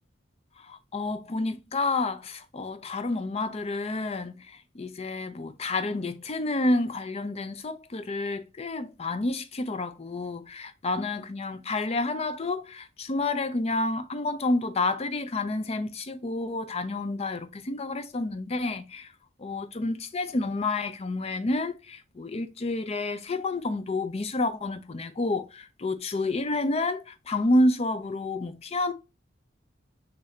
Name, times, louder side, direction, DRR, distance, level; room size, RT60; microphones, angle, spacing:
voice 1, 0.6-19.1 19.4-28.9, left 2 dB, 35° left, 0.5 m, -29 dB
6.4 x 2.7 x 2.8 m
head